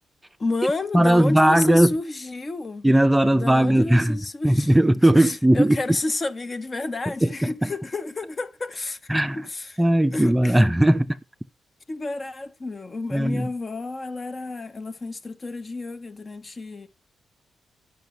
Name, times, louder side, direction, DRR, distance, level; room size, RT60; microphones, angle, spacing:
voice 1, 0.4-2.9 3.3-4.7 5.1-9.8 10.1-10.7 11.9-16.9, left 2 dB, 35° left, 1.1 m, -30 dB
voice 2, 0.9-1.9 2.8-4.2 4.4-5.8 7.2-7.7 9.1-9.4 9.8-11.1 13.1-13.5, right 1 dB, 10° right, 0.5 m, -18 dB
9.1 x 5.8 x 5.3 m
cardioid pair, 70°, 0 cm